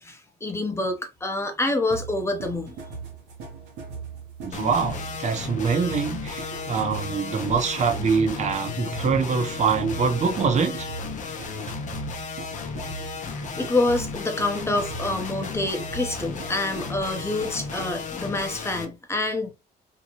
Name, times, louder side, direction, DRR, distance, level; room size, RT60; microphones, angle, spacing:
voice 1, 0.0-2.8 13.4-19.5, left 2 dB, 15° left, 0.8 m, -27 dB
sound 1, 1.9-18.1, right 4 dB, 90° right, 0.9 m, -39 dB
voice 2, 4.4-10.9, right 5 dB, 45° right, 0.7 m, -24 dB
sound 2, 4.5-18.8, left 5 dB, 45° left, 0.6 m, -34 dB
Bowed string instrument, 8.7-13.5, left 7 dB, 75° left, 0.8 m, -45 dB
2.7 x 2.2 x 2.9 m
cardioid pair, 95°, 17 cm